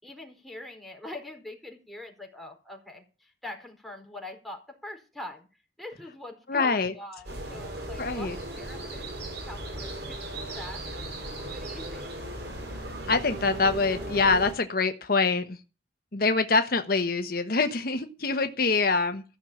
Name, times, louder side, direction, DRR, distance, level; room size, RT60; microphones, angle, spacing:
voice 1, 0.0-5.5 5.8-8.3 8.6-12.1, left 1 dB, ahead, 2 dB, 4.4 m, -43 dB
voice 2, 6.5-6.9 8.0-8.4 13.1-15.6 16.1-19.2, left 4 dB, 55° left, 7 dB, 1.1 m, -25 dB
sound 1, 7.2-14.5, right 1 dB, 85° right, 6.6 m, -37 dB
15.5 x 6.4 x 8.7 m, 0.32 s
head